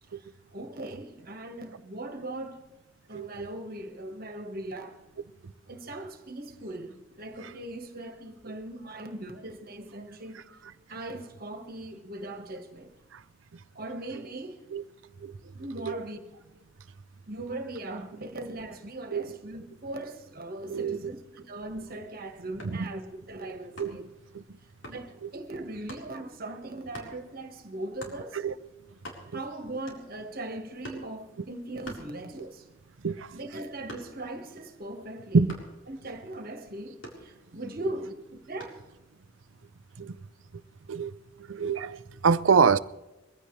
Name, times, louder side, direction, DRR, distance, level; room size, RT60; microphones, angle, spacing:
voice 1, 0.5-2.6 3.1-5.0 5.7-10.5 10.9-12.9 13.7-14.6 15.5-16.2 17.3-24.1 24.9-28.4 29.3-32.7 33.3-35.4 35.9-38.8, right 1 dB, 50° right, 1.6 m, -39 dB
voice 2, 3.1-3.5 7.4-7.5 8.5-8.6 13.1-13.2 14.7-14.8 15.2-15.4 15.8-16.0 19.1-19.4 20.7-21.1 22.6-22.9 23.8-24.0 24.3-24.4 25.2-25.3 28.3-28.5 29.3-29.4 33.0-33.4 35.3-35.5 37.8-37.9 40.0-40.2 40.9-41.1 41.5-42.8, right 5 dB, 85° right, 0.6 m, -26 dB
sound 1, 22.6-22.9 23.8-24.1 24.8-25.1 25.9-26.1 26.9-27.2 28.0-28.2 28.7-28.8 28.9-29.5 29.9-30.3 30.8-31.1 31.8-32.6 33.0-34.4 35.5-35.8 37.0-37.7 38.6-38.9, left 1 dB, 75° left, 4.2 m, -44 dB
22.5 x 16.0 x 3.3 m
head